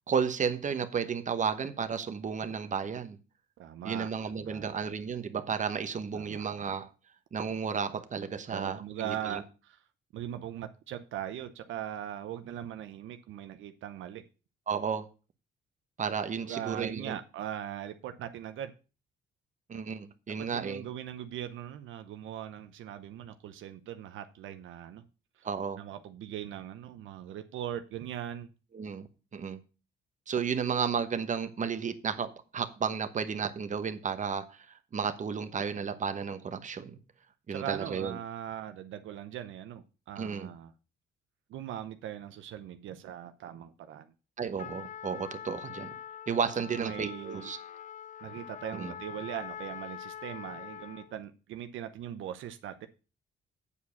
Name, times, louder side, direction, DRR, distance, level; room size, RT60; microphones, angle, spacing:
voice 1, 0.1-3.2 3.8-6.9 7.3-9.4 14.7-15.1 16.0-17.2 19.7-20.8 25.4-25.8 28.7-29.1 29.3-29.6 30.3-34.7 34.9-37.0 37.5-38.2 40.2-40.5 44.4-45.9 46.3-47.6 48.7-48.9, right 6 dB, 40° right, 1.0 m, -33 dB
voice 2, 3.6-4.1 4.4-4.7 6.1-6.4 8.5-9.8 10.1-14.2 16.4-18.7 20.4-25.0 25.4-25.5 25.8-28.5 37.5-40.7 41.5-44.1 46.7-47.5 48.2-52.9, right 10 dB, 80° right, 0.8 m, -40 dB
Trumpet, 44.6-51.1, left 9 dB, 40° left, 0.4 m, -44 dB
8.4 x 4.8 x 7.0 m
cardioid pair, 90°, 20 cm